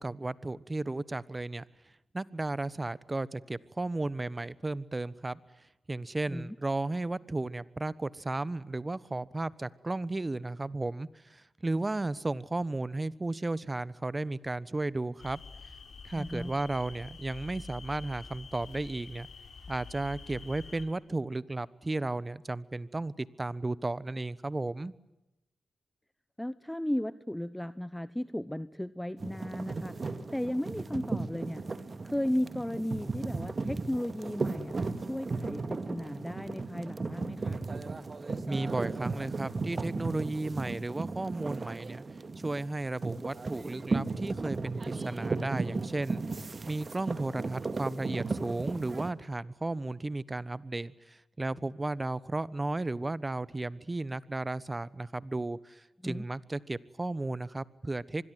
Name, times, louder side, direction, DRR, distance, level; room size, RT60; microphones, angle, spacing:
voice 1, 0.0-1.6 2.1-5.4 5.9-15.4 16.0-19.3 19.7-24.9 38.5-42.0 42.4-46.2 46.7-58.3, right 2 dB, 30° right, 19 dB, 1.2 m, -34 dB
sound 1, 15.2-20.9, left 4 dB, 70° left, 4.6 m, -47 dB
voice 2, 16.2-16.5 24.8-24.9 26.4-31.6 32.0-37.6 56.0-56.3, left 1 dB, 10° left, 16 dB, 0.9 m, -35 dB
sound 2, 29.2-49.1, right 3 dB, 50° right, 2.1 m, -36 dB
25.0 x 21.5 x 9.4 m, 0.95 s
supercardioid pair, 40°, 0 cm